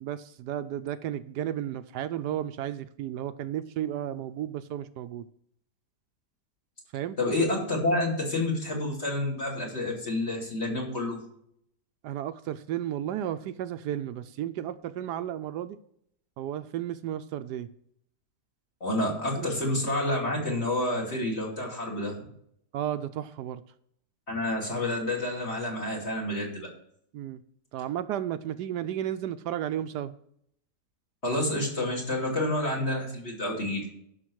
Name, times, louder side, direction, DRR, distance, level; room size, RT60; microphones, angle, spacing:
voice 1, 0.0-5.3 6.9-7.2 12.0-15.8 16.4-17.7 19.3-19.5 22.7-23.6 27.1-27.4 27.7-30.1, right 11 dB, 80° right, 11 dB, 1.1 m, -33 dB
voice 2, 7.2-11.2 18.8-22.1 24.3-26.7 31.2-33.9, left 1 dB, 40° left, -2 dB, 3.0 m, -29 dB
11.5 x 5.9 x 6.2 m, 0.70 s
omnidirectional pair, 1.8 m